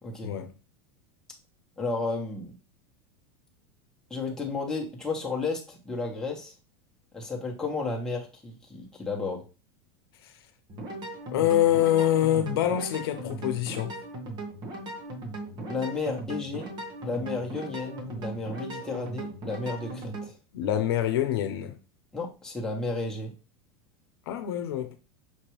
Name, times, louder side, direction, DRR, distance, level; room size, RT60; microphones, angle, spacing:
voice 1, 0.0-0.3 1.8-2.5 4.1-6.5 7.1-9.4 15.5-16.7 17.0-20.4 22.1-23.3, left 3 dB, 5° left, 1.3 m, -32 dB
sound 1, 10.7-20.3, right 2 dB, 35° right, 1.3 m, -38 dB
voice 2, 11.3-14.0 20.5-21.8 24.3-24.9, left 11 dB, 80° left, 0.8 m, -25 dB
5.8 x 2.9 x 3.2 m
supercardioid pair, 130°, 13 cm